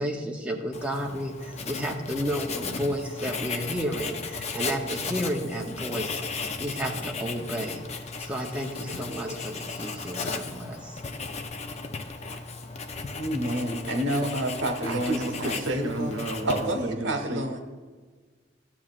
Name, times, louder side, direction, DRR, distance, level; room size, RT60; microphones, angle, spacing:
voice 1, 0.0-6.2 6.6-11.0 11.4-11.5, equal, 5° right, 0 dB, 0.7 m, -32 dB
Writing, 0.7-16.9, left 4 dB, 35° left, 0.5 m, -36 dB
voice 2, 13.2-16.2 16.4-17.6, right 1 dB, 75° right, 4 dB, 1.2 m, -29 dB
voice 3, 14.8-17.5, right 2 dB, 90° right, 4 dB, 0.8 m, -32 dB
13.0 x 7.4 x 2.4 m, 1.4 s
head